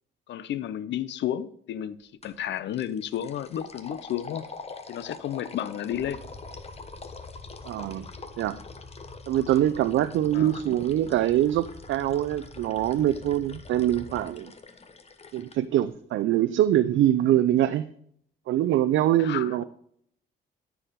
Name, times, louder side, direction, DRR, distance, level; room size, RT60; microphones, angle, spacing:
voice 1, 0.3-4.5 4.9-6.2 10.3-10.5 19.2-19.5, left 10 dB, 65° left, 0.6 m, -32 dB
sound 1, 2.2-2.4 2.7-15.6, left 4 dB, 30° left, 1.2 m, -45 dB
sound 2, 5.9-14.2, left 3 dB, 10° left, 4.6 m, -47 dB
voice 2, 7.7-8.1 8.4-8.6 9.3-14.5 15.3-17.9 18.5-19.6, right 12 dB, 75° right, 0.5 m, -24 dB
13.5 x 4.8 x 5.2 m
cardioid pair, 90°, 20 cm